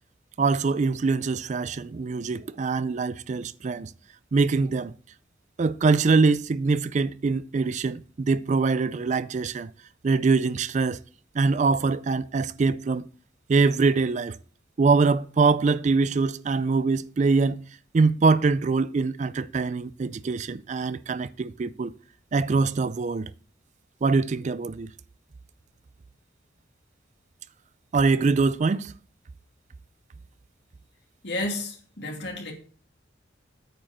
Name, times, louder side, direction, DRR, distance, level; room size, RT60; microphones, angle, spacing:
voice 1, 0.4-3.9 4.3-4.9 5.6-9.7 10.0-11.0 11.3-13.1 13.5-14.4 14.8-17.6 17.9-21.9 22.3-23.3 24.0-24.9 27.9-28.9, right 4 dB, 40° right, 0.4 m, -23 dB
voice 2, 31.2-32.5, left 2 dB, 65° left, 2.6 m, -31 dB
9.0 x 5.1 x 7.2 m
head